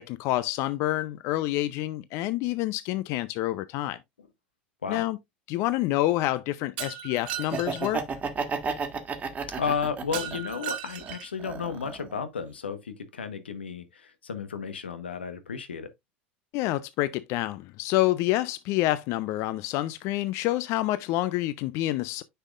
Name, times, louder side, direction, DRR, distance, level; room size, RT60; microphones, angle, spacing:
voice 1, 0.0-4.0 4.9-5.2 5.5-8.0 16.5-22.2, left 16 dB, 55° left, 0.5 m, -27 dB
Shatter, 6.8-7.9 10.1-11.4, right 11 dB, 70° right, 1.3 m, -36 dB
Laughter, 7.4-10.6 11.0-12.1, right 5 dB, 25° right, 1.8 m, -32 dB
voice 2, 9.5-15.9, left 6 dB, 90° left, 1.1 m, -33 dB
9.7 x 5.6 x 2.4 m
hypercardioid pair, 80°, 6 cm